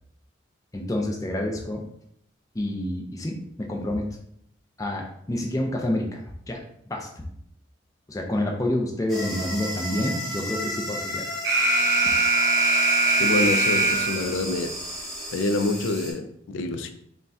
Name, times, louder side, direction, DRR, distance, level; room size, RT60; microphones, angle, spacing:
voice 1, 0.7-1.8 2.5-4.1 4.8-6.2 6.5-6.6 6.9-7.3 8.1-11.2 12.0-12.2, left 1 dB, 15° left, 1 dB, 0.5 m, -28 dB
sound 1, 9.1-16.1, equal, ahead, 1.0 m, -33 dB
Alarm, 11.4-14.4, right 2 dB, 60° right, 0.8 m, -21 dB
voice 2, 13.2-14.7 15.3-16.9, left 2 dB, 80° left, 8 dB, 0.4 m, -26 dB
5.6 x 2.2 x 2.7 m, 0.71 s
head